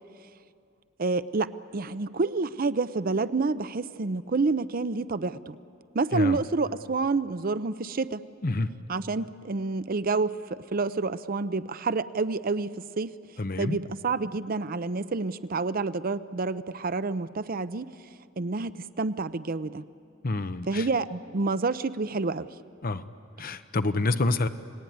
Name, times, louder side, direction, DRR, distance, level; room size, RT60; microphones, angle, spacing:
voice 1, 1.0-5.6 5.9-8.2 8.9-13.1 13.6-17.9 18.4-19.8 20.7-22.5 23.4-23.5, right 3 dB, 45° right, 14 dB, 0.6 m, -28 dB
voice 2, 13.4-13.8 20.2-20.9 22.8-23.0 23.4-24.5, left 2 dB, 50° left, 11 dB, 0.9 m, -27 dB
30.0 x 19.5 x 9.4 m, 2.4 s
head